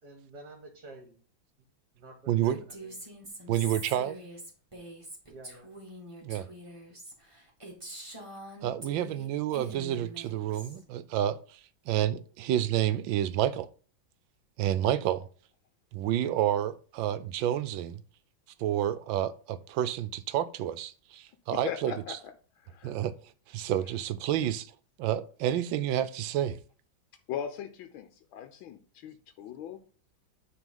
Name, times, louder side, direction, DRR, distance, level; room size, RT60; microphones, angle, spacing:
voice 1, 0.0-1.2 1.9-3.0 5.3-5.7, right 2 dB, 55° right, 1.7 m, -50 dB
voice 2, 2.3-2.6 3.5-4.2 6.2-6.4 8.6-11.4 11.9-13.7 14.6-15.3 15.9-18.0 18.6-21.9 22.8-23.1 23.5-24.7 25.0-26.6, right 11 dB, 80° right, 1.3 m, -29 dB
Female speech woman speaking, 2.4-9.3 9.5-10.8, right 1 dB, 15° right, 1.8 m, -44 dB
voice 3, 21.5-22.9 24.4-24.5 27.3-29.8, left 9 dB, 85° left, 1.5 m, -40 dB
9.1 x 3.6 x 5.4 m
omnidirectional pair, 2.1 m